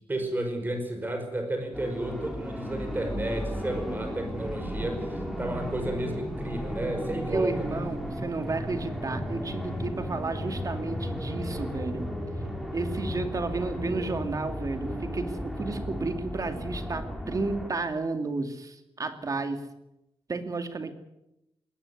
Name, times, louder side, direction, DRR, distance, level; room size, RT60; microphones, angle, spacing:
voice 1, 0.1-7.8 13.9-14.2, right 1 dB, 20° right, 5 dB, 5.2 m, -32 dB
sound 1, 1.7-17.7, equal, ahead, 4.3 m, -34 dB
voice 2, 7.1-12.1 12.7-19.7 20.3-20.9, right 3 dB, 35° right, 7 dB, 2.4 m, -32 dB
20.5 x 17.0 x 9.8 m, 0.88 s
wide cardioid pair, 175°, 10 cm